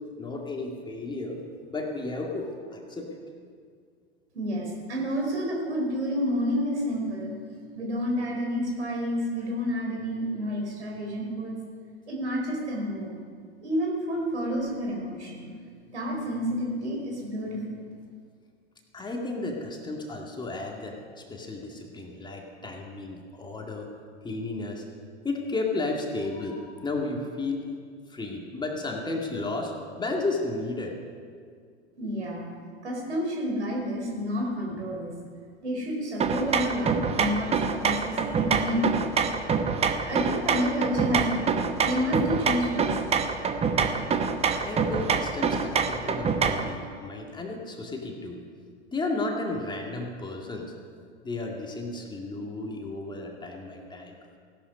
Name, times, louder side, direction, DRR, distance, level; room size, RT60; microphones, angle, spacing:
voice 1, 0.2-1.4 1.7-3.2 18.9-23.9 24.2-24.8 25.2-27.6 28.1-31.0 44.5-48.4 48.9-50.7 51.2-54.2, left 2 dB, 15° left, 0 dB, 2.1 m, -33 dB
voice 2, 4.3-7.3 7.7-11.6 12.1-13.2 13.6-15.5 15.9-17.8 32.0-32.5 32.8-35.1 35.6-38.9 40.0-43.2, equal, 85° right, 0 dB, 4.1 m, -29 dB
sound 1, 36.2-46.7, right 5 dB, 20° right, 0.9 m, -26 dB
16.5 x 12.0 x 5.2 m, 2.1 s
hypercardioid pair, 100°, 33 cm